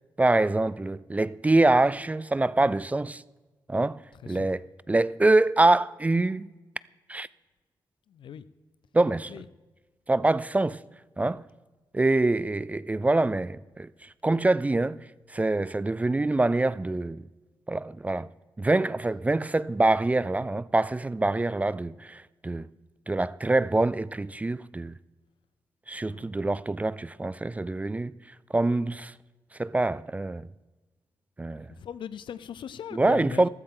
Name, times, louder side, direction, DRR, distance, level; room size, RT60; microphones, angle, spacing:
voice 1, 0.2-3.2 3.7-6.5 7.1-7.3 8.9-9.4 10.1-10.8 11.2-11.4 11.9-13.9 14.2-15.0 15.3-17.2 17.7-18.3 18.6-22.7 23.1-25.0 25.9-28.1 28.5-29.1 29.6-30.5 31.4-31.7 32.9-33.5, right 2 dB, 15° right, 0.3 m, -25 dB
voice 2, 4.2-4.6 8.1-8.4 9.3-9.4 26.1-26.3 31.8-33.5, left 8 dB, 75° left, 0.5 m, -39 dB
15.0 x 13.0 x 3.8 m
cardioid pair, 75°, 8 cm